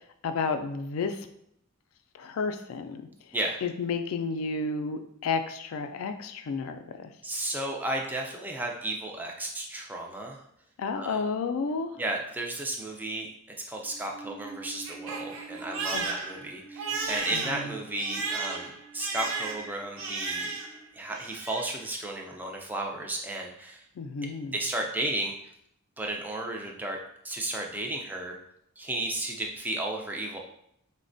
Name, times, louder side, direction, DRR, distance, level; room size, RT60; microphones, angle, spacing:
voice 1, 0.2-1.3 2.2-3.0 3.6-7.1 10.8-12.0 15.9-16.1 17.3-17.7 24.0-24.5, left 4 dB, 70° left, 8 dB, 0.3 m, -31 dB
voice 2, 7.2-10.4 10.9-11.2 12.0-13.3 13.7-20.5 20.9-23.8 24.5-25.3 26.0-27.0 27.2-28.4 28.8-30.4, right 1 dB, 10° right, 0 dB, 0.3 m, -33 dB
Crying sobbing, 13.8-20.8 21.1-21.8, right 4 dB, 65° right, 0.5 m, -35 dB
4.0 x 2.1 x 2.5 m, 0.75 s
head